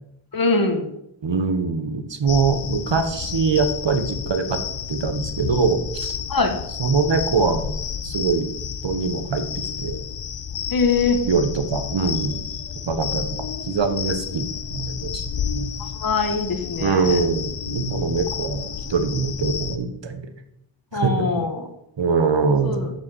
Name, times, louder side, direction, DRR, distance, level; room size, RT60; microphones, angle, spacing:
voice 1, 0.3-0.9 6.3-6.5 10.7-11.2 16.0-17.2 20.9-21.7 22.6-22.9, left 4 dB, 45° left, 5 dB, 1.7 m, -22 dB
voice 2, 1.2-4.6 4.9-6.2 6.8-7.7 8.0-8.5 8.8-10.0 11.3-12.5 12.9-15.2 15.5-15.7 16.8-20.3 20.9-21.4 22.0-22.9, right 4 dB, 60° right, 8 dB, 1.3 m, -23 dB
sound 1, 2.3-19.8, left 8 dB, 60° left, 0.9 m, -31 dB
8.0 x 6.9 x 8.0 m, 0.79 s
wide cardioid pair, 125°, 48 cm